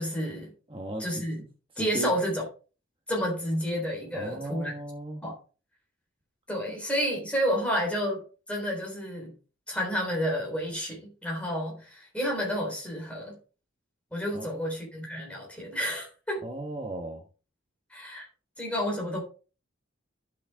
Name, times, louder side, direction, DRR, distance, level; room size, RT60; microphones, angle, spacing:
voice 1, 0.0-0.5 1.0-1.4 1.8-2.5 3.1-4.7 5.2-5.4 6.5-8.2 8.5-9.3 9.7-13.4 14.1-16.4 17.9-18.3 18.6-19.2, equal, 5° left, -1 dB, 3.8 m, -30 dB
voice 2, 0.7-1.5 1.8-2.1 4.1-5.2 14.3-14.5 16.4-17.2, right 2 dB, 25° right, 1 dB, 1.3 m, -36 dB
12.0 x 6.1 x 3.5 m, 0.35 s
head